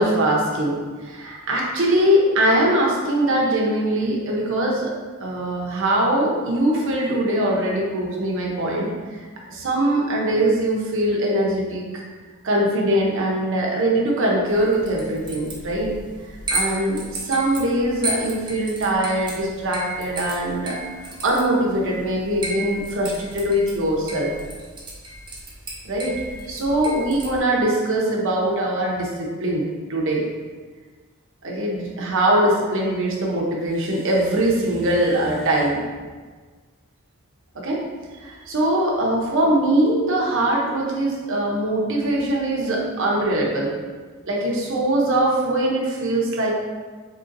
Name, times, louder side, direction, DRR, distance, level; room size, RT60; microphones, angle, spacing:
voice 1, 0.0-4.9 5.2-9.2 9.5-11.8 12.4-15.9 16.5-20.8 21.2-24.3 25.8-26.1 26.5-30.3 31.4-35.8 37.5-37.8 38.2-43.7 44.3-46.5, right 1 dB, 60° right, -3 dB, 0.8 m, -22 dB
sound 1, 14.5-27.4, right 2 dB, 20° right, 0.7 m, -34 dB
3.8 x 3.7 x 2.6 m, 1.5 s
head